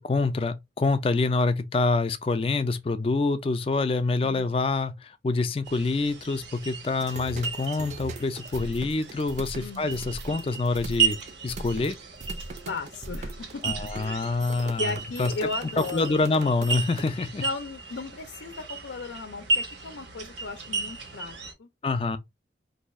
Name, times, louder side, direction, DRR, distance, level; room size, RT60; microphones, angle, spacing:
voice 1, 0.0-11.2 11.4-12.0 13.6-14.9 15.2-15.3 15.9-17.4 21.8-22.2, left 3 dB, 30° left, 0.3 m, -26 dB
sound 1, 5.6-21.5, right 4 dB, 90° right, 1.0 m, -34 dB
sound 2, 7.0-17.1, right 2 dB, 40° right, 0.4 m, -40 dB
voice 2, 9.6-10.0 12.7-14.4 14.8-16.2 17.4-21.7, left 3 dB, 90° left, 0.5 m, -36 dB
2.6 x 2.3 x 4.1 m
head